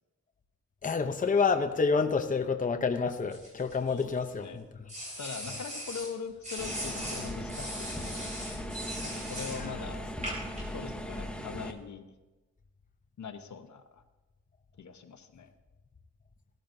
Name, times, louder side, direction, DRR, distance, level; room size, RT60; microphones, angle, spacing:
voice 1, 0.8-4.6 9.5-9.7, left 5 dB, 30° left, 6 dB, 0.7 m, -28 dB
sound 1, 3.3-4.3 4.9-6.1 6.4-9.6 10.2-10.6, equal, 25° right, 4.2 m, -39 dB
voice 2, 5.2-8.5 9.0-10.0 10.7-12.1 13.2-14.0 14.8-15.5, left 6 dB, 75° left, 7 dB, 1.0 m, -42 dB
sound 2, 6.6-11.7, equal, 5° left, 0.9 m, -38 dB
17.0 x 13.5 x 2.7 m, 1.1 s
wide cardioid pair, 125°, 29 cm